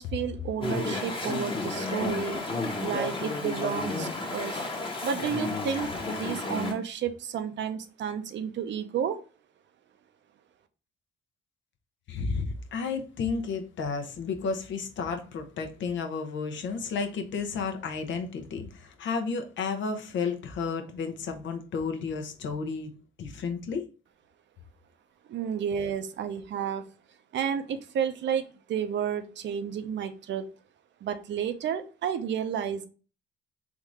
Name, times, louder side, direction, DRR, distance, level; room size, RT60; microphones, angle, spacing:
voice 1, 0.0-2.4 2.8-4.6 5.0-9.2 25.3-26.8 27.3-30.5 31.0-32.9, right 8 dB, 65° right, 0.7 m, -31 dB
Chatter / Stream, 0.6-6.7, left 2 dB, 25° left, 1.2 m, -32 dB
voice 2, 12.1-22.9 23.2-23.8, left 5 dB, 70° left, 0.9 m, -32 dB
3.7 x 2.7 x 4.7 m
cardioid pair, 90°, 20 cm